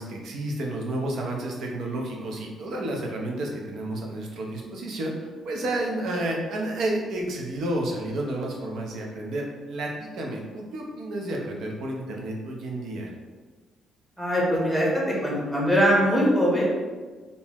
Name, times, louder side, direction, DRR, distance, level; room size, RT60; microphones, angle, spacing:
voice 1, 0.0-13.1, right 1 dB, 65° right, -1 dB, 0.7 m, -31 dB
voice 2, 14.2-16.7, equal, 5° right, -5 dB, 1.0 m, -22 dB
3.7 x 2.7 x 2.9 m, 1.4 s
cardioid pair, 145°, 0 cm